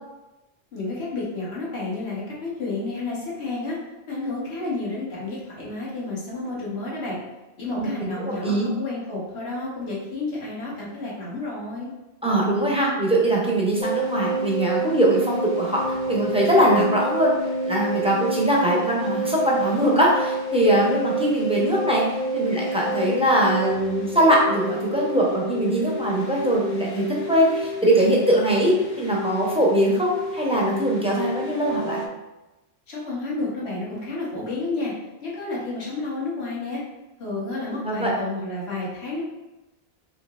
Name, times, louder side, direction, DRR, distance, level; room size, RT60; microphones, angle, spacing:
voice 1, 0.7-3.8 4.1-7.2 7.6-11.9 32.9-34.9 35.2-36.8 37.2-39.2, left 3 dB, 80° left, -5 dB, 1.4 m, -30 dB
voice 2, 7.7-8.7 12.2-17.3 17.6-22.0 22.3-32.0 37.8-38.1, right 1 dB, 5° right, -4 dB, 0.6 m, -21 dB
sound 1, 13.8-32.1, right 1 dB, 55° left, 0.6 m, -29 dB
4.4 x 2.8 x 2.4 m, 1.0 s
omnidirectional pair, 1.1 m